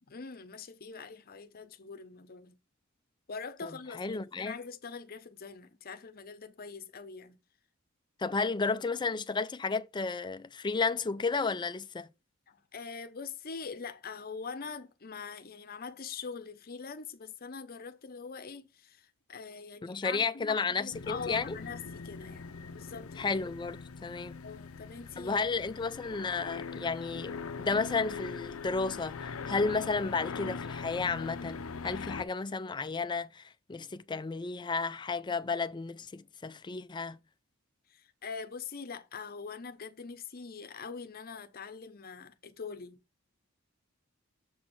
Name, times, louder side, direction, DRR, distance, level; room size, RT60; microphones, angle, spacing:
voice 1, 0.0-2.6 3.3-7.4 12.5-23.3 24.4-25.4 37.9-43.0, left 5 dB, 45° left, 0.8 m, -43 dB
voice 2, 4.0-4.6 8.2-12.1 19.8-21.6 23.2-24.4 25.2-37.2, left 4 dB, 20° left, 0.4 m, -33 dB
sound 1, 20.9-32.2, left 5 dB, 85° left, 0.6 m, -41 dB
7.0 x 4.4 x 4.2 m
head